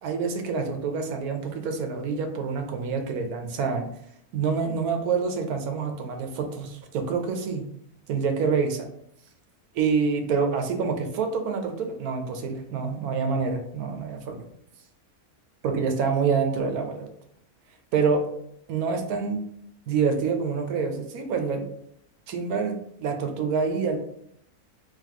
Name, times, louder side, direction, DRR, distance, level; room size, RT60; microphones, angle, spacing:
voice 1, 0.0-3.9 4.3-7.6 8.1-8.9 9.7-14.4 15.6-17.1 17.9-18.3 18.7-19.5 19.9-21.7 22.3-24.0, right 5 dB, 80° right, 5 dB, 1.2 m, -27 dB
3.6 x 2.8 x 3.7 m, 0.72 s
omnidirectional pair, 1.6 m